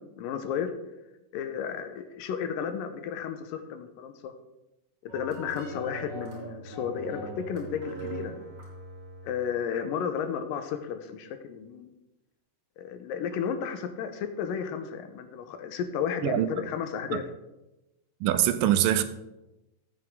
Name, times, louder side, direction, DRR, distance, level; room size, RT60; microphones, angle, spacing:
voice 1, 0.2-0.7 1.3-4.3 5.0-8.3 9.2-11.9 12.8-17.3, left 7 dB, 85° left, 2.5 m, -33 dB
sound 1, 5.1-9.5, right 1 dB, 45° right, 4.2 m, -40 dB
voice 2, 18.2-19.0, right 12 dB, 85° right, 2.3 m, -23 dB
13.5 x 7.9 x 3.7 m
omnidirectional pair, 3.9 m